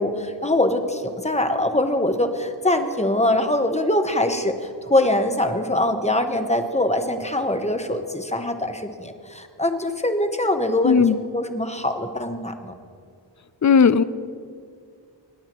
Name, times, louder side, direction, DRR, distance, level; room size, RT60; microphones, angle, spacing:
voice 1, 0.0-12.7, left 1 dB, 15° left, 6 dB, 1.0 m, -23 dB
voice 2, 10.8-11.2 13.6-14.0, left 6 dB, 40° left, 15 dB, 0.5 m, -15 dB
25.5 x 9.8 x 3.0 m, 2.2 s
wide cardioid pair, 55°, 44 cm